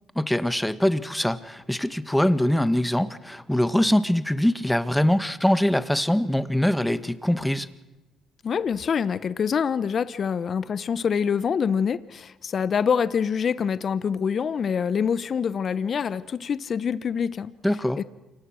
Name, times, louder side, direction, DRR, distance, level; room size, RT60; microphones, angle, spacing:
voice 1, 0.2-7.7 17.6-18.0, left 1 dB, 5° left, 13 dB, 1.8 m, -23 dB
voice 2, 8.4-17.5 18.0-18.1, left 7 dB, 50° left, 16 dB, 1.0 m, -25 dB
29.0 x 24.5 x 6.4 m, 1.0 s
hypercardioid pair, 55°, 0 cm